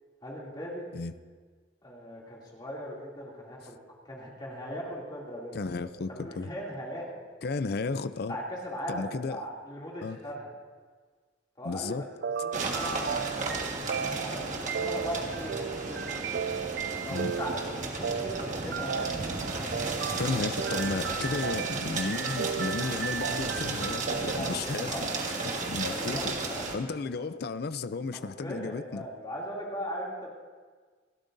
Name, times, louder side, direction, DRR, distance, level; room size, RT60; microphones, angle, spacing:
voice 1, 0.2-0.9 1.8-3.8 4.0-5.6 6.1-7.2 8.3-10.5 11.6-11.9 12.4-16.3 17.0-20.2 24.4-25.0 25.3-26.6 27.0-27.2 28.1-30.3, equal, 25° left, 2.7 m, -39 dB
voice 2, 5.5-6.5 7.4-8.4 8.9-9.4 10.0-10.2 11.6-12.1 17.1-17.3 20.2-25.0 25.4-26.3 26.7-29.1, left 3 dB, 55° left, 0.5 m, -33 dB
sound 1, 12.2-24.6, right 7 dB, 60° right, 0.3 m, -35 dB
sound 2, 12.5-26.8, right 3 dB, 40° right, 1.6 m, -34 dB
28.5 x 12.5 x 2.7 m
head